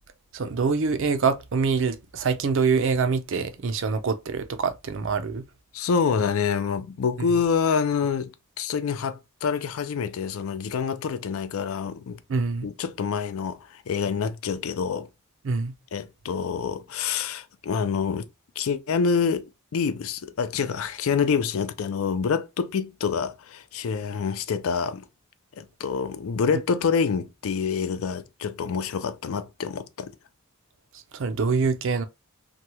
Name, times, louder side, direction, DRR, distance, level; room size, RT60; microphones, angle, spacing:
voice 1, 0.3-5.5 12.3-12.7 15.4-15.7 30.9-32.0, right 5 dB, 55° right, 0.4 m, -25 dB
voice 2, 5.7-12.2 12.6-15.1 15.9-18.3 18.6-25.1 25.6-30.1, left 6 dB, 65° left, 0.4 m, -27 dB
2.9 x 2.2 x 2.9 m
head